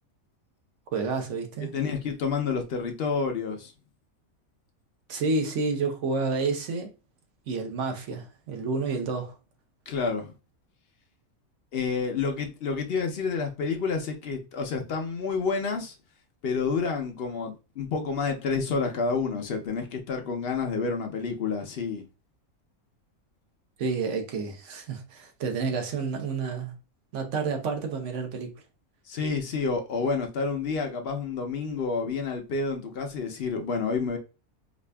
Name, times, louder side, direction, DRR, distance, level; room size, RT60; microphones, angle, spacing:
voice 1, 0.9-1.7 5.1-6.9 7.5-9.3 23.8-26.7 27.1-28.5, right 4 dB, 60° right, 1.0 m, -29 dB
voice 2, 1.6-3.7 9.9-10.3 11.7-15.9 16.4-22.0 29.1-34.2, left 4 dB, 60° left, 0.7 m, -29 dB
5.0 x 2.4 x 2.2 m
omnidirectional pair, 1.5 m